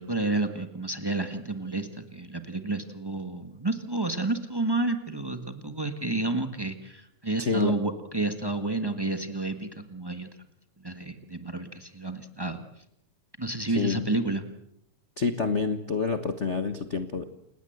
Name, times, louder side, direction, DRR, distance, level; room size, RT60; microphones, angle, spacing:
voice 1, 0.0-10.3 10.8-12.6 13.4-14.4, right 2 dB, 40° right, 8 dB, 0.3 m, -30 dB
voice 2, 7.4-7.8 13.7-14.0 15.2-17.2, left 4 dB, 65° left, 9 dB, 0.6 m, -28 dB
29.5 x 18.0 x 8.0 m, 0.77 s
omnidirectional pair, 3.5 m